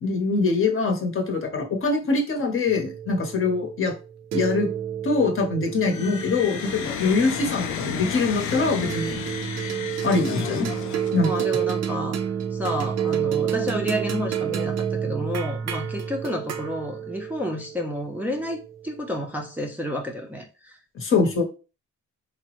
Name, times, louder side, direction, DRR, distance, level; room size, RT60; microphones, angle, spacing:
voice 1, 0.0-3.9 4.3-4.7 5.0-9.2 10.0-10.7 11.1-11.3 20.9-21.4, left 3 dB, 45° left, 3 dB, 0.8 m, -23 dB
sound 1, 2.7-7.3 8.5-19.0, right 8 dB, 60° right, 0.5 m, -30 dB
sound 2, 5.8-11.5, left 8 dB, 80° left, 0.5 m, -32 dB
voice 2, 11.2-12.2 12.5-20.8, equal, 5° right, 1 dB, 0.5 m, -30 dB
3.3 x 2.0 x 2.9 m, 0.33 s
cardioid pair, 90°, 30 cm